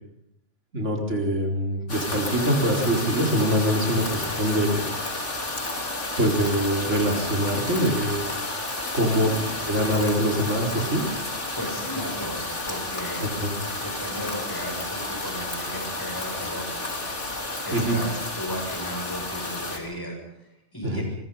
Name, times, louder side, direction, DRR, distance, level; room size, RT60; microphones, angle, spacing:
voice 1, 0.7-4.8 6.2-8.2 8.9-9.3 9.7-11.0 13.4-13.5 17.7-18.0 20.8-21.0, equal, 90° right, 1 dB, 4.5 m, -24 dB
sound 1, 1.9-19.8, left 2 dB, 85° left, 3.7 m, -31 dB
voice 2, 3.9-4.3 9.2-9.7 11.6-13.3 13.8-16.9 17.6-21.0, equal, 20° left, 1 dB, 6.9 m, -36 dB
25.0 x 22.5 x 5.6 m, 0.79 s
omnidirectional pair, 1.2 m